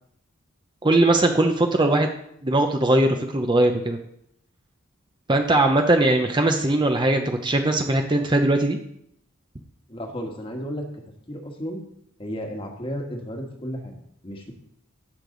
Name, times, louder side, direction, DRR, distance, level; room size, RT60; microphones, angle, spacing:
voice 1, 0.8-2.1 2.4-4.0 5.3-8.8, right 2 dB, 20° right, 4 dB, 0.7 m, -20 dB
voice 2, 9.9-11.0 11.3-11.8 12.2-14.5, equal, 25° left, 2 dB, 1.5 m, -33 dB
16.0 x 6.7 x 3.9 m, 0.73 s
head